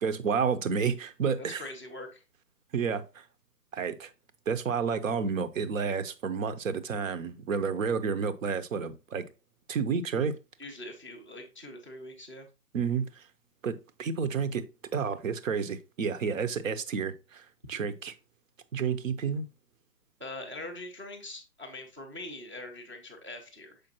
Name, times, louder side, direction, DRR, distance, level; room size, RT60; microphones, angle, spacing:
voice 1, 0.0-1.6 2.7-3.2 3.7-4.1 4.5-9.3 9.7-10.4 12.7-13.2 13.6-14.7 14.9-18.1 18.7-19.5, right 6 dB, 55° right, 0.8 m, -30 dB
voice 2, 1.4-2.2 10.6-12.5 20.2-23.8, left 2 dB, 10° right, 0.5 m, -43 dB
6.6 x 5.1 x 2.9 m
figure-of-eight pair, 140°, 49 cm